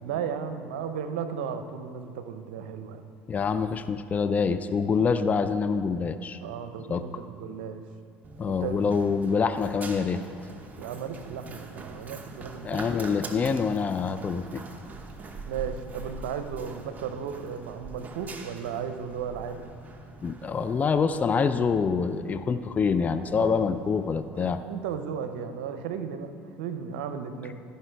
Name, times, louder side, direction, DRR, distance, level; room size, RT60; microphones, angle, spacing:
voice 1, 0.0-3.0 6.4-7.8 8.5-8.8 10.8-12.8 15.4-19.7 23.3-23.7 24.3-27.6, right 7 dB, 80° right, 9 dB, 0.7 m, -35 dB
voice 2, 3.3-6.4 6.9-7.0 8.4-10.2 12.6-14.6 20.2-24.6, left 5 dB, 30° left, 11 dB, 0.5 m, -26 dB
Run, 8.2-24.3, right 3 dB, 35° right, 1.0 m, -44 dB
13.5 x 5.6 x 4.6 m, 2.6 s
hypercardioid pair, 80°, 5 cm